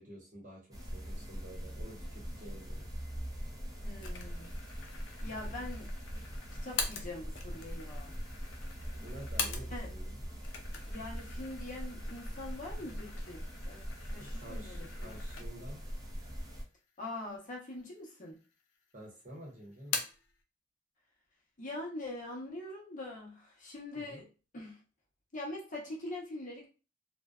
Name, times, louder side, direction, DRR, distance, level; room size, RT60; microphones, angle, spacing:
voice 1, 0.0-2.9 9.0-10.2 14.2-15.8 18.9-20.0 24.0-24.2, right 1 dB, 45° right, -3 dB, 0.9 m, -50 dB
sound 1, 0.7-16.6, equal, 20° right, 0.5 m, -42 dB
voice 2, 3.8-4.5 5.2-5.9 6.6-8.1 9.7-9.9 10.9-15.1 17.0-18.4 21.6-24.3 24.5-24.8 25.3-26.7, left 2 dB, 40° left, -2 dB, 0.7 m, -43 dB
sound 2, 4.0-10.0 10.3-15.8 16.2-16.3 17.2-17.8 18.1-18.9 19.2-20.3, left 5 dB, 75° left, 0.5 m, -43 dB
2.5 x 2.2 x 2.3 m, 0.34 s
head